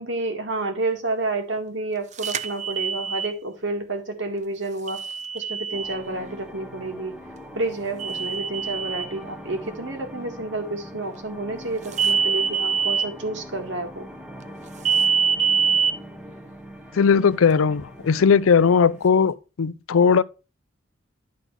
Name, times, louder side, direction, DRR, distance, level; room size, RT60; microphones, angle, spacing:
voice 1, 0.0-5.0 5.3-7.2 7.5-14.1, right 2 dB, 65° right, 1.9 m, -30 dB
sound 1, 2.2-3.3 4.9-6.0 8.0-9.1 11.9-13.1 14.8-15.9, right 6 dB, 35° right, 0.5 m, -24 dB
sound 2, 5.7-19.1, equal, 5° right, 1.0 m, -42 dB
voice 2, 16.9-20.2, left 6 dB, 90° left, 0.5 m, -18 dB
10.5 x 4.1 x 5.6 m
head